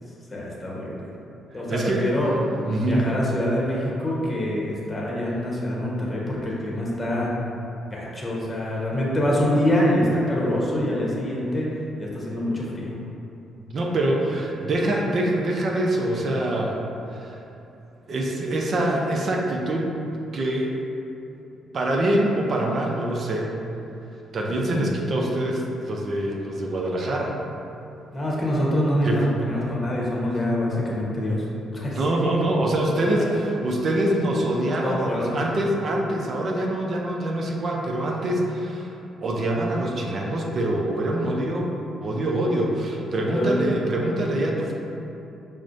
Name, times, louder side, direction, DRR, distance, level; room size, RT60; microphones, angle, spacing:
voice 1, 0.3-1.0 1.5-2.3 2.8-7.3 7.9-11.7 12.0-12.9 24.7-24.9 28.1-31.4 31.7-32.0 34.7-35.4 43.3-43.5, equal, 25° left, -5 dB, 0.9 m, -25 dB
voice 2, 1.5-2.3 2.6-3.1 13.7-16.8 17.1-17.4 18.1-19.9 20.3-20.8 21.7-23.5 24.3-27.3 29.0-29.3 31.9-38.9 39.2-41.7 42.0-44.7, right 1 dB, 50° right, -1 dB, 0.5 m, -24 dB
5.9 x 2.1 x 2.5 m, 2.9 s
cardioid pair, 90°, 0 cm